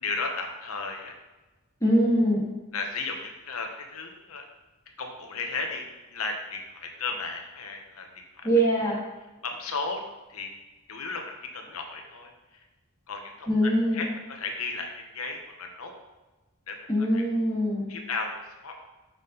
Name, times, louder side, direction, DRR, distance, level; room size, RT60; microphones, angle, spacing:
voice 1, 0.0-1.1 2.7-4.4 5.0-8.5 9.4-10.0 10.3-10.5 10.9-11.2 11.5-12.3 13.1-15.9 16.7-16.8 17.1-17.2 17.9-18.8, left 4 dB, 75° left, 3 dB, 1.0 m, -34 dB
voice 2, 1.8-2.5 8.4-9.0 13.5-14.0 16.9-17.9, equal, 15° left, -6 dB, 1.9 m, -23 dB
6.1 x 5.6 x 3.9 m, 1.1 s
head